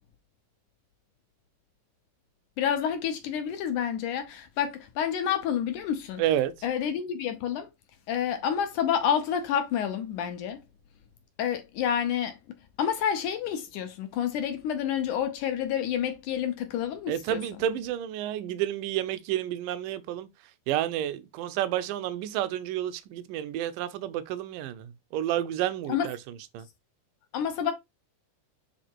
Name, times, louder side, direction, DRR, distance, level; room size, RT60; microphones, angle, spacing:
voice 1, 2.6-6.2 6.6-7.7 8.1-10.6 11.4-12.3 12.8-17.4 25.9-26.1 27.3-27.7, left 8 dB, 75° left, 1.9 m, -29 dB
voice 2, 6.2-6.5 17.1-20.3 20.7-26.7, right 12 dB, 75° right, 2.1 m, -30 dB
8.0 x 3.5 x 4.5 m
omnidirectional pair, 4.4 m